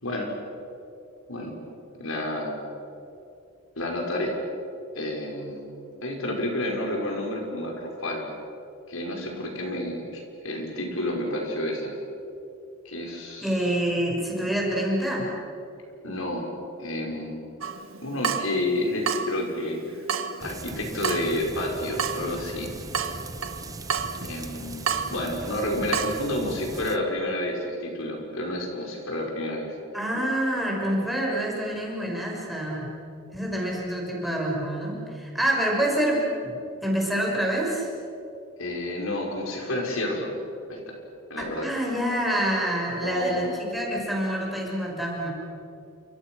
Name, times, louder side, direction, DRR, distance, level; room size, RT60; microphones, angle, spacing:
voice 1, 1.9-2.6 3.8-4.3 4.9-5.7 6.0-8.3 8.9-11.9 12.9-13.7 16.0-16.5 16.8-17.6 18.0-20.0 20.4-22.7 24.2-29.7 38.6-40.3 40.7-40.9 41.3-41.7 43.0-43.5, left 1 dB, 75° left, 1 dB, 5.4 m, -30 dB
voice 2, 13.4-15.3 29.9-32.9 33.3-37.9 41.6-45.3, right 1 dB, ahead, -3 dB, 6.2 m, -27 dB
Water tap faucet / Drip, 17.6-26.2, right 6 dB, 70° right, 1.6 m, -32 dB
sound 1, 20.4-27.0, right 2 dB, 15° right, 1.2 m, -39 dB
30.0 x 27.5 x 6.3 m, 2.7 s
head